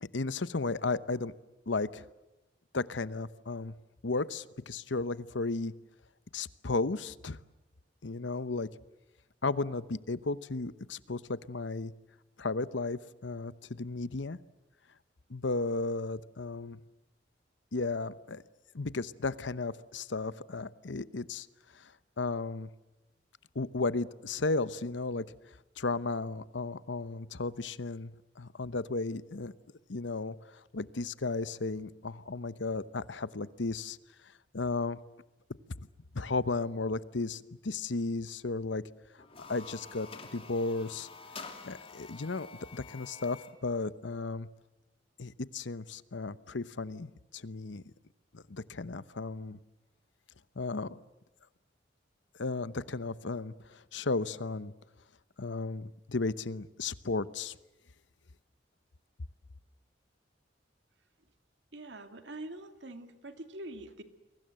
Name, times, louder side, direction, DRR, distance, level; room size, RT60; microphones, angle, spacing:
voice 1, 0.0-1.3 1.7-2.1 2.7-3.7 4.0-5.7 6.3-7.4 8.0-8.7 9.4-11.9 12.4-14.4 15.3-16.8 17.7-18.4 18.7-21.5 21.7-22.7 23.5-25.3 25.8-29.5 29.9-34.0 34.5-35.0 36.1-38.8 39.5-41.1 41.6-42.5 42.7-44.5 45.2-47.8 48.3-49.6 50.6-51.0 52.4-54.7 55.4-57.5, left 3 dB, 80° left, 16 dB, 0.9 m, -34 dB
sound 1, 39.2-43.6, left 4 dB, 30° left, 2.9 m, -48 dB
voice 2, 61.7-64.0, right 1 dB, 70° right, 8 dB, 2.3 m, -44 dB
29.5 x 23.0 x 7.7 m, 0.96 s
head